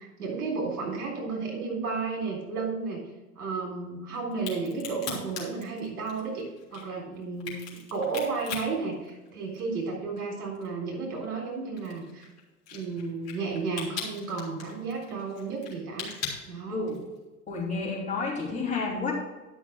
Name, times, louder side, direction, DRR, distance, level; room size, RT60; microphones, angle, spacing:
voice 1, 0.0-3.0 3.4-12.3 12.7-16.1 16.5-16.8, right 4 dB, 65° right, -2 dB, 3.7 m, -33 dB
Crack, 4.3-9.8 10.2-17.2, left 6 dB, 30° left, 3.3 m, -40 dB
voice 2, 16.7-17.0 17.5-19.1, left 4 dB, 15° left, -5 dB, 2.9 m, -30 dB
11.0 x 6.0 x 4.8 m, 1.1 s
figure-of-eight pair, 90°, 47 cm